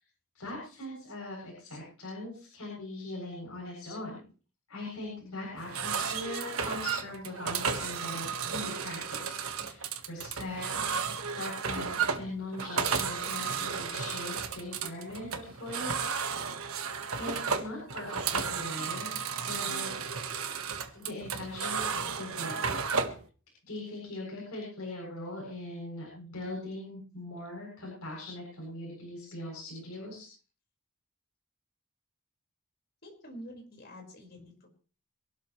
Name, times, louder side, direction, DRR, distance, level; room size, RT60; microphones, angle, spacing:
voice 1, 0.3-4.2 4.7-10.7 11.3-16.0 17.2-19.1 19.4-19.9 20.9-21.8 22.2-23.1 23.7-30.3, left 2 dB, 75° left, -3 dB, 8.0 m, -41 dB
sound 1, 5.6-23.2, right 6 dB, 70° right, 1.6 m, -33 dB
voice 2, 33.0-34.7, equal, 45° left, 2 dB, 5.2 m, -47 dB
26.0 x 12.5 x 3.2 m, 0.37 s
head